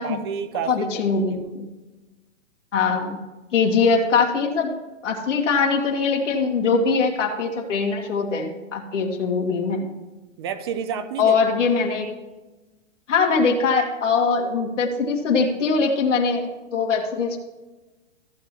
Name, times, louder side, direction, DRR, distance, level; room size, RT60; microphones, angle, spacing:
voice 1, 0.0-0.9 1.1-1.5 10.4-11.3, right 7 dB, 20° right, 11 dB, 0.4 m, -30 dB
voice 2, 0.7-1.7 2.7-3.2 3.5-4.7 5.0-9.9 11.2-12.1 13.1-17.4, left 5 dB, 75° left, 1 dB, 1.7 m, -22 dB
14.0 x 7.6 x 2.9 m, 1.1 s
hypercardioid pair, 145°, 37 cm